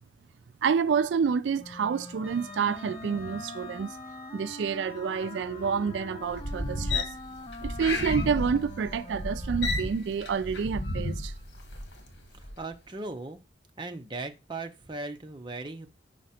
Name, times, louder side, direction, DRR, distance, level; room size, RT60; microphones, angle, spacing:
voice 1, 0.6-3.9 4.3-7.1 7.6-11.3, right 6 dB, 85° right, 0.3 m, -28 dB
Wind instrument woodwind instrument, 1.6-10.1, left 2 dB, 25° left, 0.4 m, -44 dB
Wind instrument woodwind instrument 2, 2.2-6.6, left 3 dB, 5° right, 2.9 m, -50 dB
sound 1, 6.2-12.0 12.4-12.6, left 2 dB, 90° left, 1.5 m, -32 dB
voice 2, 12.3-13.4 13.8-15.9, right 2 dB, 25° right, 0.7 m, -38 dB
5.7 x 4.9 x 4.2 m
head